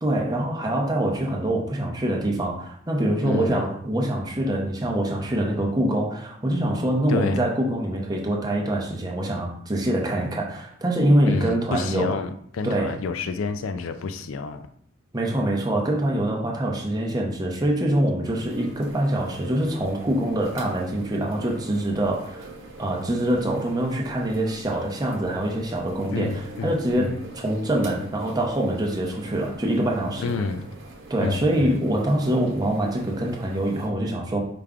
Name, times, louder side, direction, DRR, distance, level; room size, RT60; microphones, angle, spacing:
voice 1, 0.0-12.1 12.6-13.0 15.1-22.5 22.8-30.3 31.1-34.4, right 1 dB, 20° right, -1 dB, 0.7 m, -24 dB
voice 2, 3.2-3.7 7.1-7.4 11.3-14.7 26.1-27.2 30.2-30.6 31.2-31.7, left 4 dB, 85° left, 9 dB, 0.4 m, -29 dB
sound 1, 18.2-33.9, right 2 dB, 80° right, 1.0 m, -43 dB
4.9 x 2.2 x 3.6 m, 0.63 s
head